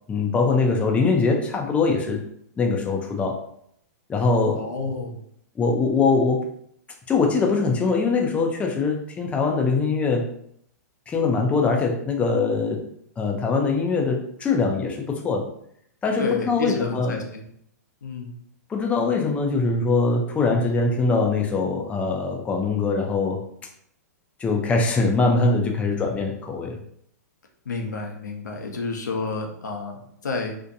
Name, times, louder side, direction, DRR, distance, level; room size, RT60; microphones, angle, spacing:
voice 1, 0.1-2.3 2.6-3.4 4.1-4.6 5.6-6.4 7.1-10.3 11.1-12.9 13.2-15.5 16.0-17.2 18.7-23.4 24.4-26.8, left 4 dB, 15° left, 1 dB, 0.4 m, -22 dB
voice 2, 4.5-5.2 16.2-17.4 18.0-18.3 26.0-26.1 27.7-30.6, left 4 dB, 90° left, 2 dB, 0.6 m, -30 dB
2.6 x 2.1 x 2.6 m, 0.67 s
hypercardioid pair, 125°, 9 cm